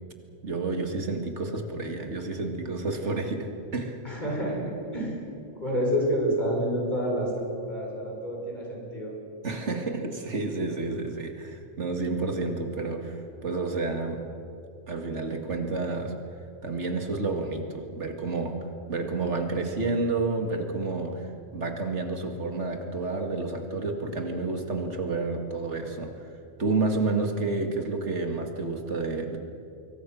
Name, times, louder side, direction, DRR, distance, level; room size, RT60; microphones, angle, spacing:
voice 1, 0.4-4.0 9.4-14.2 14.9-16.1 16.6-18.6 18.9-26.3 26.6-29.4, right 3 dB, 80° right, 4 dB, 2.4 m, -30 dB
voice 2, 4.0-5.2 5.5-9.1, equal, 40° left, -2 dB, 6.7 m, -28 dB
25.5 x 23.0 x 6.2 m, 2.7 s
omnidirectional pair, 1.2 m